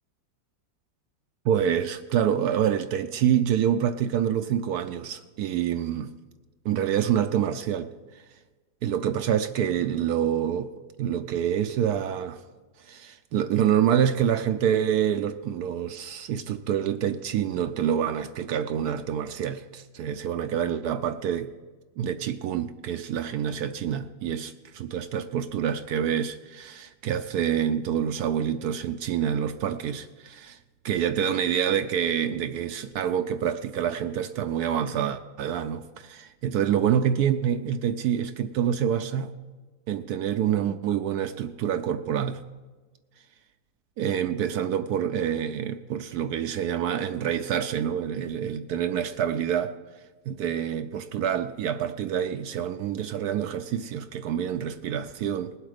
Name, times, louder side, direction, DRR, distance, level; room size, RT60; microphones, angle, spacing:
voice 1, 1.4-6.1 6.6-7.9 8.8-10.7 11.0-12.4 12.8-21.5 22.0-30.6 30.8-39.4 39.9-42.4 44.0-49.8 50.3-55.5, right 9 dB, 75° right, 9 dB, 1.1 m, -27 dB
19.5 x 8.0 x 5.0 m, 1.3 s
omnidirectional pair, 1.8 m